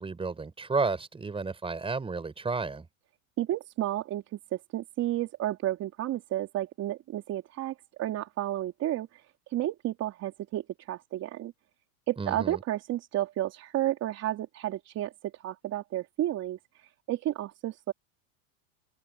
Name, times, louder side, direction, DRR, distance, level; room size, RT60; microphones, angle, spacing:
voice 1, 0.0-2.8 12.2-12.6, right 4 dB, 10° right, 4.7 m, -32 dB
voice 2, 3.4-4.2 4.5-9.2 9.5-11.5 12.1-15.1 15.4-17.9, right 13 dB, 35° right, 3.6 m, -32 dB
open air
supercardioid pair, 135°, 43 cm